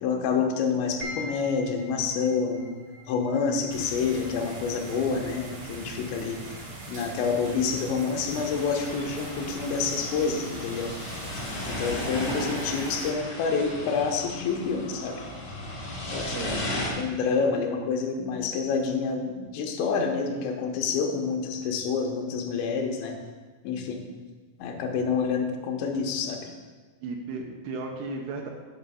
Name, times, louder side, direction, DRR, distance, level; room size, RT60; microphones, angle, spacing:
voice 1, 0.0-2.7 3.1-6.4 6.9-10.9 11.7-15.2 16.1-23.2 23.6-24.0 24.6-26.4, left 5 dB, 85° left, 2 dB, 3.1 m, -28 dB
sound 1, 1.0-15.5, equal, 25° right, 0.5 m, -49 dB
sound 2, 3.7-13.1, right 1 dB, 55° right, 1.5 m, -41 dB
sound 3, 8.1-16.9, left 1 dB, 65° left, 1.0 m, -35 dB
voice 2, 16.3-16.7 17.1-17.2 27.0-28.5, right 3 dB, 80° right, 2 dB, 2.5 m, -35 dB
9.3 x 5.5 x 5.5 m, 1.4 s
omnidirectional pair, 5.1 m